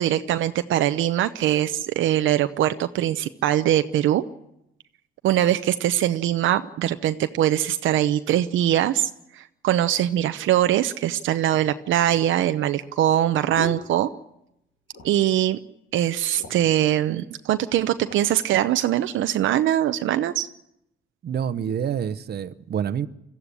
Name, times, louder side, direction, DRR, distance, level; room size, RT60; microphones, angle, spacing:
voice 1, 0.0-4.2 5.2-14.1 15.0-15.6 15.9-20.5, right 12 dB, 80° right, 0.8 m, -22 dB
sound 1, 11.5-14.6 14.9-15.4 15.7-15.8 16.1-16.8 17.5-18.3 18.9-19.1, left 2 dB, 75° left, 3.5 m, -41 dB
voice 2, 21.2-23.1, right 8 dB, 55° right, 1.0 m, -27 dB
22.0 x 14.5 x 9.9 m
cardioid pair, 90°, 20 cm